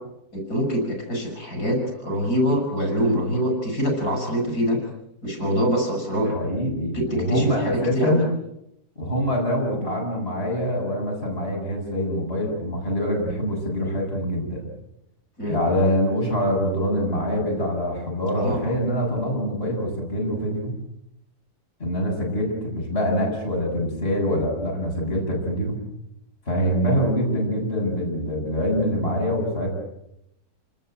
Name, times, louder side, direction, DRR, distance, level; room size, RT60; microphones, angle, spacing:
voice 1, 0.3-4.8 5.2-6.3 6.9-8.2 15.4-15.6 18.3-18.8 26.6-26.7, equal, 85° left, 3 dB, 7.6 m, -24 dB
voice 2, 6.3-8.3 9.0-14.7 15.4-20.8 21.8-25.8 26.5-29.7, equal, 40° left, -2 dB, 8.0 m, -24 dB
28.5 x 19.5 x 9.1 m, 0.82 s
omnidirectional pair, 1.6 m